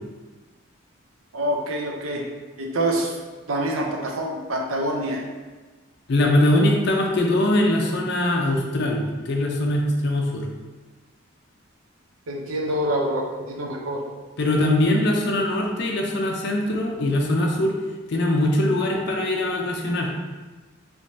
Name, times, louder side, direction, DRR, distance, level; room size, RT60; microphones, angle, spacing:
voice 1, 1.3-2.2 2.6-3.1 3.5-5.2 12.3-14.0, right 1 dB, 90° right, 0 dB, 0.6 m, -26 dB
voice 2, 6.1-10.5 14.4-17.7 18.1-20.1, left 1 dB, 55° left, 0 dB, 0.5 m, -22 dB
3.3 x 3.0 x 2.6 m, 1.3 s
head